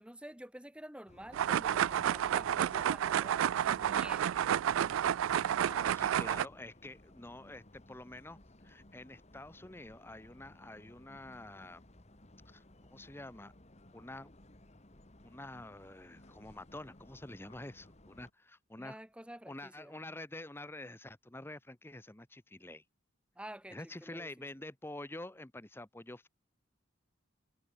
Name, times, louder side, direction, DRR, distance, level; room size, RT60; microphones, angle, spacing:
voice 1, 0.0-3.5 3.7-4.4 18.8-20.0 23.4-24.5, right 1 dB, 5° right, 2.8 m, -49 dB
sound 1, 1.1-18.3, left 1 dB, 35° left, 2.3 m, -59 dB
sound 2, 1.3-6.5, right 9 dB, 80° right, 0.3 m, -30 dB
voice 2, 5.6-8.4 8.6-11.8 12.5-13.5 13.9-14.3 15.2-19.0 19.5-22.8 23.7-26.3, left 1 dB, 10° left, 1.0 m, -48 dB
head